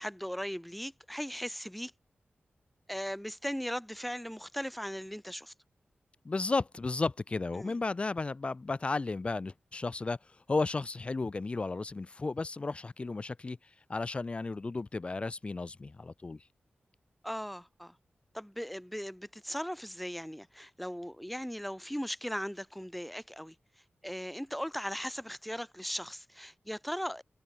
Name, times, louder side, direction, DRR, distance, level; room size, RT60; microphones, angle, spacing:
voice 1, 0.0-1.9 2.9-5.5 7.6-7.8 17.2-17.9 18.3-23.5 24.0-27.2, equal, ahead, 1.2 m, -38 dB
voice 2, 6.2-10.2 10.5-13.6 13.9-16.4, left 3 dB, 30° left, 0.6 m, -33 dB
wide cardioid pair, 130°, 4 cm